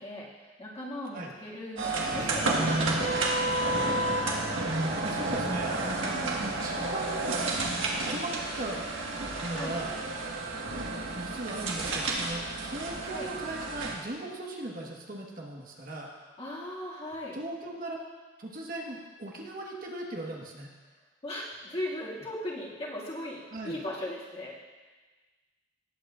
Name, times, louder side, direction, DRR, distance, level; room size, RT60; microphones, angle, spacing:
voice 1, 0.0-3.7 6.1-6.4 9.5-9.7 13.1-13.3 16.4-17.4 21.2-24.5, left 1 dB, 35° left, -6 dB, 2.2 m, -38 dB
sound 1, 1.8-13.9, right 2 dB, 80° right, 1.6 m, -30 dB
voice 2, 5.0-7.4 8.0-8.8 9.4-9.9 11.1-16.1 17.3-18.0 18.4-20.7 23.5-23.8, right 2 dB, 50° right, -1 dB, 1.4 m, -38 dB
18.5 x 8.5 x 2.5 m, 1.3 s
head